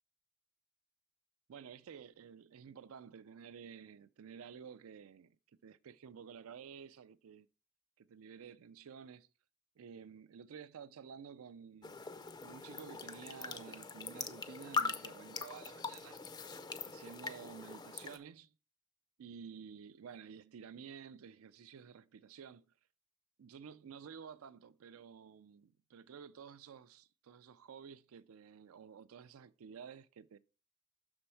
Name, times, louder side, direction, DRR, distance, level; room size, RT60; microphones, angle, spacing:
voice 1, 1.5-5.4 5.6-7.5 8.0-9.3 9.8-12.0 12.4-16.2 16.8-18.5 19.2-22.6 23.4-30.4, right 7 dB, 80° right, 0.4 m, -52 dB
sound 1, 11.8-18.2, left 5 dB, 20° left, 0.4 m, -42 dB
6.1 x 4.4 x 5.7 m
head